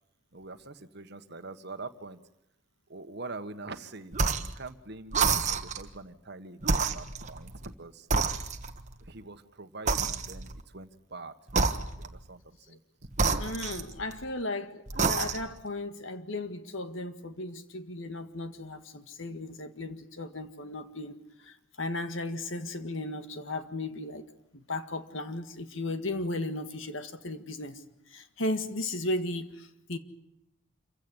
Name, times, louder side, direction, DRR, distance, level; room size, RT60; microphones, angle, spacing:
voice 1, 0.3-2.2 2.9-8.1 9.0-11.3 11.7-13.1, right 3 dB, 55° right, 9 dB, 1.5 m, -44 dB
sound 1, 4.1-4.6 5.1-5.9 6.6-7.7 8.1-8.9 9.9-10.6 11.5-12.2 13.1-14.3 14.9-15.6, right 4 dB, 35° right, 1.3 m, -29 dB
voice 2, 13.4-24.3 24.5-27.8 28.1-30.0, left 2 dB, 65° left, 9 dB, 1.8 m, -35 dB
27.5 x 16.0 x 9.7 m, 0.83 s
head